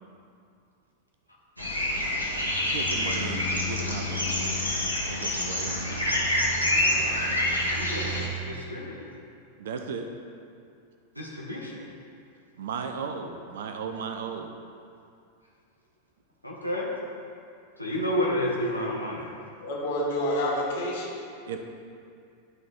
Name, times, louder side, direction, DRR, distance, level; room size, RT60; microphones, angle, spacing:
sound 1, 1.6-8.3, left 1 dB, 90° right, 1.1 m, -27 dB
voice 1, 2.7-4.8 5.1-5.9 9.6-10.1 12.6-14.5 21.5-21.6, right 5 dB, 60° right, 5 dB, 0.6 m, -36 dB
voice 2, 6.7-7.2 7.8-9.0 11.2-11.8 16.4-16.9 17.8-19.3, left 1 dB, 90° left, -4 dB, 1.1 m, -31 dB
voice 3, 19.6-21.2, left 1 dB, 55° left, -4 dB, 1.6 m, -28 dB
11.0 x 4.1 x 3.5 m, 2.4 s
figure-of-eight pair, 90°, 0 cm